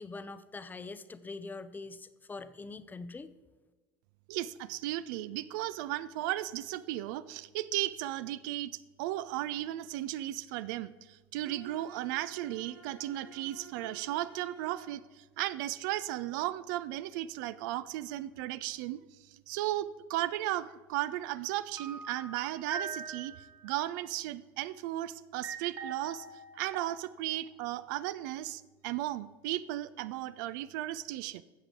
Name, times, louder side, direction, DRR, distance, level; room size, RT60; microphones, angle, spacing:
voice 1, 0.0-3.3, left 3 dB, 15° left, 13 dB, 0.5 m, -43 dB
voice 2, 4.3-26.3 26.5-31.4, right 14 dB, 55° right, 16 dB, 0.4 m, -35 dB
Bowed string instrument, 11.4-15.0, right 5 dB, 70° right, 3.0 m, -51 dB
sound 1, 21.8-23.6 25.4-27.2 27.5-27.6, right 5 dB, 35° right, 1.5 m, -42 dB
13.0 x 7.9 x 3.8 m, 1.3 s
figure-of-eight pair, 70°, 13 cm